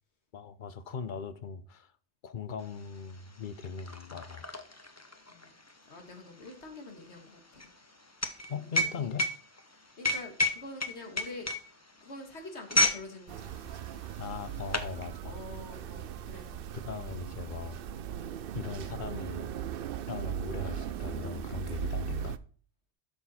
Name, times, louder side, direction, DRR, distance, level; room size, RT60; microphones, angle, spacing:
voice 1, 0.3-1.9 2.2-4.5 8.5-9.2 14.2-15.4 16.7-17.8 18.5-19.5 20.1-22.3, left 6 dB, 50° left, 0.8 m, -39 dB
sound 1, 2.8-2.9 3.1-13.1 13.4-13.6 14.3-14.9, left 1 dB, 15° left, 0.8 m, -31 dB
voice 2, 5.9-7.7 8.6-9.1 9.7-11.5 12.0-14.0 15.2-16.7, left 2 dB, 85° left, 2.1 m, -46 dB
sound 2, 13.3-22.4, right 9 dB, 65° right, 0.7 m, -38 dB
12.0 x 6.2 x 4.2 m
omnidirectional pair, 1.1 m